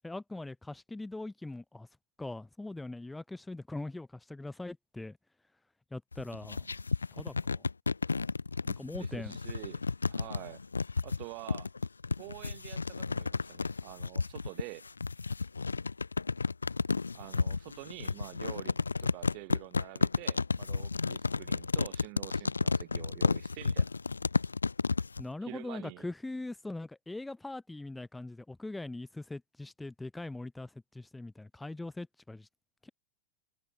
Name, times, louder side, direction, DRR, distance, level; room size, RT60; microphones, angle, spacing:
voice 1, 0.0-1.9 2.2-5.2 5.9-6.7 7.1-7.6 8.7-9.3 25.2-32.5 32.8-32.9, left 2 dB, 5° left, 0.6 m, -41 dB
sound 1, 6.1-25.2, left 4 dB, 75° left, 0.5 m, -32 dB
voice 2, 9.0-10.6 11.0-11.7 12.2-14.9 17.1-23.9 25.4-26.0, right 40 dB or more, 45° right, 0.9 m, -47 dB
figure-of-eight pair, 90°, 0 cm